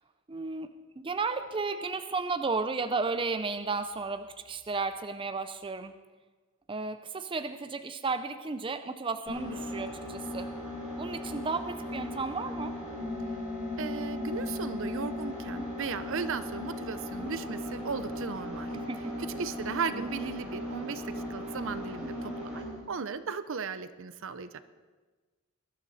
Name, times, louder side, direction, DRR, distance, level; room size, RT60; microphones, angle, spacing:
voice 1, 0.3-0.7 1.0-5.9 6.7-10.5 11.0-12.8 15.5-15.7 17.2-17.4 18.7-19.2 19.9-20.1 22.0-22.3, right 4 dB, 25° right, 9 dB, 0.5 m, -34 dB
sound 1, 9.3-22.8, left 1 dB, 5° right, 6.1 m, -37 dB
voice 2, 13.8-18.7 19.2-24.6, right 5 dB, 60° right, 12 dB, 0.7 m, -36 dB
21.0 x 12.0 x 4.2 m, 1.3 s
head